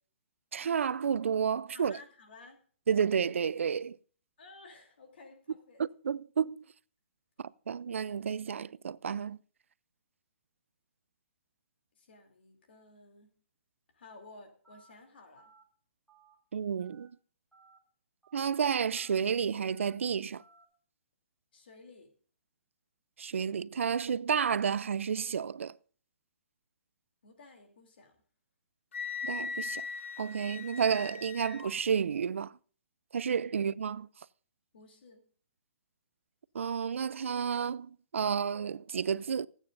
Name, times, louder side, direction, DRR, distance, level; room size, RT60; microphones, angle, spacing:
voice 1, 0.5-2.0 2.9-4.0 5.8-6.6 7.4-9.4 16.5-17.1 18.3-20.4 23.2-25.8 29.2-29.9 30.2-32.5 33.1-34.1 36.5-39.5, right 7 dB, 85° right, 0.4 m, -31 dB
voice 2, 1.7-2.6 4.4-5.8 11.9-13.3 13.9-15.5 21.5-22.1 27.2-28.2 34.7-35.2, left 3 dB, 55° left, 2.9 m, -54 dB
Telephone, 14.6-14.9 15.4-15.6 16.1-16.3 16.8-17.1 17.5-17.8 18.2-18.5 18.9-19.2 19.7-19.9 20.4-20.6, right 4 dB, ahead, 1.8 m, -61 dB
Wind instrument woodwind instrument, 28.9-31.7, left 5 dB, 75° left, 1.6 m, -39 dB
25.5 x 9.0 x 2.6 m
hypercardioid pair, 175°, 7 cm